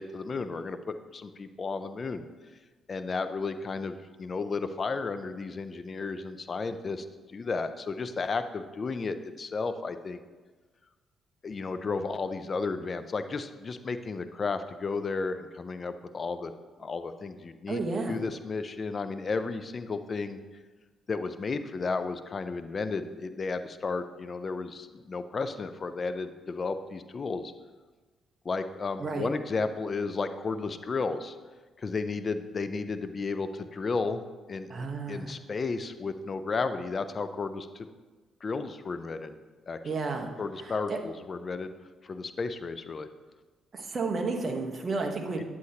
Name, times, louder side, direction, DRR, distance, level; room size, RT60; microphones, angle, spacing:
voice 1, 0.0-2.3 2.9-10.2 11.4-16.5 16.8-17.8 18.1-20.4 21.1-27.5 28.4-31.4 31.8-34.2 34.5-37.9 38.4-39.4 39.7-39.8 40.4-41.7 42.0-43.1 45.4-45.5, left 4 dB, 40° left, 10 dB, 0.5 m, -33 dB
voice 2, 17.7-18.2 29.0-29.3 34.7-35.3 39.8-40.3 40.6-41.0 43.7-45.4, right 3 dB, 40° right, 2 dB, 1.1 m, -32 dB
9.5 x 7.8 x 2.9 m, 1.3 s
cardioid pair, 90°, 0 cm